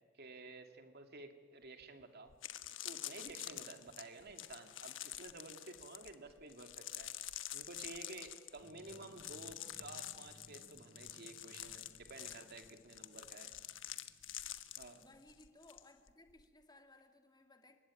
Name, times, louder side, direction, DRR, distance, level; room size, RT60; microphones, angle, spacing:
voice 1, 0.1-2.3 2.8-7.1 7.5-13.5 14.8-15.0, right 3 dB, 55° right, 2.5 m, -52 dB
sound 1, 1.8-1.9 2.3-16.4, left 12 dB, 70° left, 1.2 m, -48 dB
sound 2, 8.6-15.1, equal, 40° right, 7.1 m, -64 dB
voice 2, 15.0-17.8, left 2 dB, 20° left, 2.3 m, -62 dB
29.5 x 16.5 x 9.8 m
head